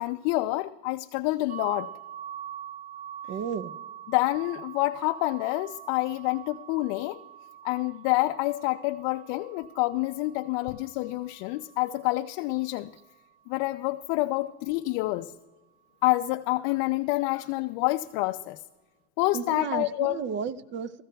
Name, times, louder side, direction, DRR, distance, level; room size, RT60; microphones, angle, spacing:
voice 1, 0.0-1.9 4.1-7.2 7.6-12.9 13.5-15.3 16.0-18.6 19.2-20.2, left 19 dB, 60° left, 0.5 m, -27 dB
sound 1, 1.5-13.2, right 10 dB, 80° right, 0.7 m, -45 dB
voice 2, 3.3-3.7 19.3-21.0, right 7 dB, 35° right, 0.5 m, -33 dB
16.0 x 14.5 x 2.3 m
supercardioid pair, 120°, 34 cm